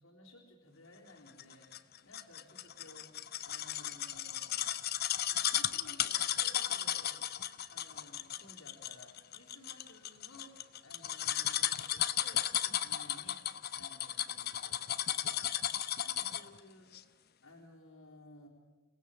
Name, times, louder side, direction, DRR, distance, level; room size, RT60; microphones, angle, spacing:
voice 1, 0.0-3.1 3.4-4.8 5.3-16.9 17.4-18.5, left 1 dB, 90° left, -4 dB, 4.1 m, -57 dB
sound 1, 1.4-16.6 16.9-17.0, left 11 dB, 50° left, 0.8 m, -35 dB
29.5 x 18.5 x 7.2 m, 1.4 s
head